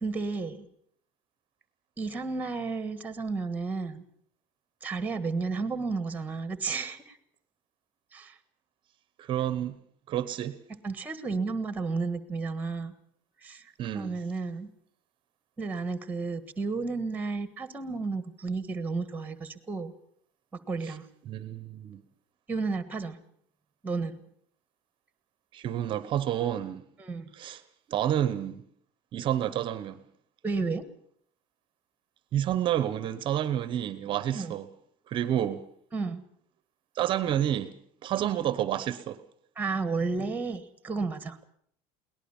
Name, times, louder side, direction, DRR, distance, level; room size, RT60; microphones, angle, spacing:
voice 1, 0.0-0.7 2.0-4.0 4.8-7.2 8.1-8.4 10.8-12.9 13.4-14.7 15.6-19.9 20.7-21.1 22.5-23.2 23.8-24.2 27.0-27.3 30.4-30.8 34.3-34.5 35.9-36.2 39.6-41.4, right 4 dB, 10° right, 1.5 m, -32 dB
voice 2, 9.2-9.8 10.1-10.6 13.8-14.2 20.8-20.9 21.3-22.0 25.5-26.8 27.3-27.6 27.9-28.6 29.1-30.0 32.3-34.7 35.1-35.6 37.0-37.7 38.0-39.2, right 11 dB, 35° right, 0.9 m, -29 dB
22.0 x 19.0 x 7.1 m
cardioid pair, 180°, 15 cm